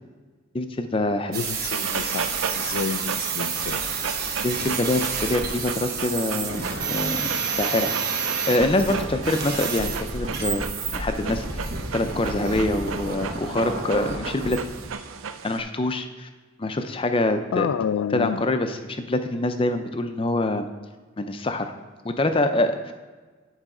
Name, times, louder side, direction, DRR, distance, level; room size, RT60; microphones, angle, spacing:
voice 1, 0.5-1.4 4.4-10.7 10.9-14.6 15.4-16.3 16.6-17.7 18.1-20.7 21.2-21.7 22.0-22.9, left 2 dB, 25° left, 8 dB, 0.5 m, -25 dB
voice 2, 1.3-3.8 5.0-5.1 17.5-18.4, left 7 dB, 80° left, 13 dB, 0.3 m, -29 dB
sound 1, 1.3-15.0, right 5 dB, 50° right, 1.1 m, -29 dB
Dog, 1.7-15.6, right 6 dB, 85° right, 0.5 m, -35 dB
10.0 x 4.0 x 4.9 m, 1.4 s
head